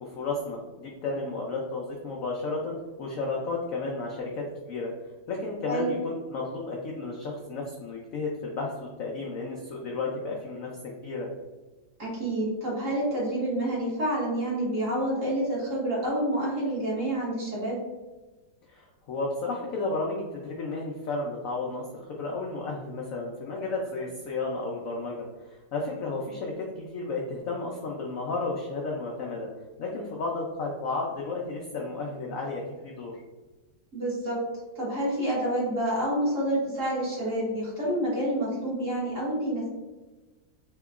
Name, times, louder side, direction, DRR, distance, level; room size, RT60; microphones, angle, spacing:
voice 1, 0.0-4.3 4.6-4.9 5.3-11.3 18.7-25.1 25.4-29.5 29.8-33.1, left 3 dB, 80° left, -2 dB, 0.7 m, -33 dB
voice 2, 5.7-6.0 12.0-17.8 33.9-34.4 34.8-39.6, right 1 dB, 50° right, -5 dB, 1.3 m, -28 dB
4.2 x 2.9 x 2.4 m, 1.2 s
omnidirectional pair, 2.0 m